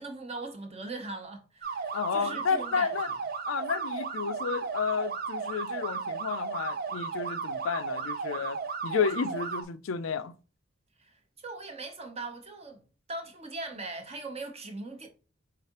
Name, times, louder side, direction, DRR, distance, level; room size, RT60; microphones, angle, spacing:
voice 1, 0.0-3.1 11.0-12.8 13.1-15.1, right 2 dB, 30° right, 0.9 m, -40 dB
sound 1, 1.6-9.6, right 5 dB, 50° right, 0.5 m, -35 dB
voice 2, 1.9-3.1 3.5-10.3, left 6 dB, 90° left, 0.5 m, -31 dB
4.8 x 3.6 x 2.9 m
head